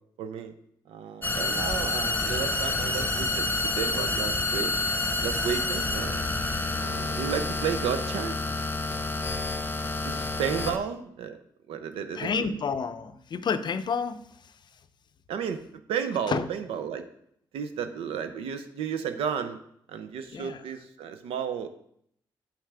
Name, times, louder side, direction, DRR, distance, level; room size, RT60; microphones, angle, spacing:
voice 1, 0.2-0.5 0.9-4.7 5.2-6.3 6.8-8.4 10.0-11.4 11.7-12.6 15.3-15.6 15.9-17.1 17.5-19.6 19.9-21.7, right 7 dB, 85° right, 0.6 m, -32 dB
sound 1, 1.2-10.8, left 2 dB, 20° left, 0.8 m, -28 dB
voice 2, 12.1-14.2 16.3-16.4 20.3-20.6, left 5 dB, 50° left, 0.5 m, -29 dB
7.0 x 5.7 x 3.3 m
cardioid pair, 60°, 9 cm